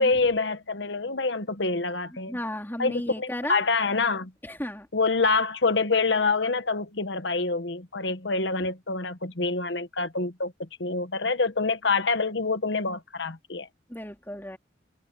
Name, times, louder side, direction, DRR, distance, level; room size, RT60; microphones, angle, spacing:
voice 1, 0.0-2.4 2.8-4.3 4.9-13.7, left 3 dB, 65° left, 1.3 m, -26 dB
voice 2, 2.1-3.6 4.4-4.9 13.9-14.6, left 1 dB, 10° left, 3.1 m, -34 dB
head